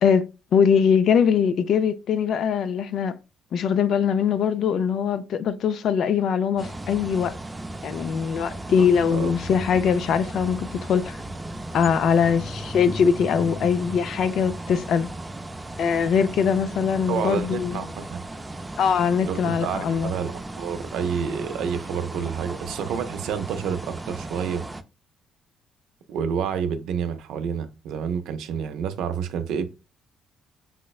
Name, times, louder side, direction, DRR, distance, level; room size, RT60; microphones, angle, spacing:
voice 1, 0.0-3.2 3.5-7.4 7.8-11.2 11.7-15.1 15.8-17.8 18.8-20.1, left 7 dB, 65° left, 0.3 m, -22 dB
sound 1, 6.6-24.8, right 1 dB, 15° right, 0.3 m, -36 dB
voice 2, 8.8-9.3 17.1-18.2 19.2-24.6 26.1-29.7, right 7 dB, 80° right, 0.4 m, -29 dB
5.5 x 2.0 x 2.3 m
cardioid pair, 95°, 0 cm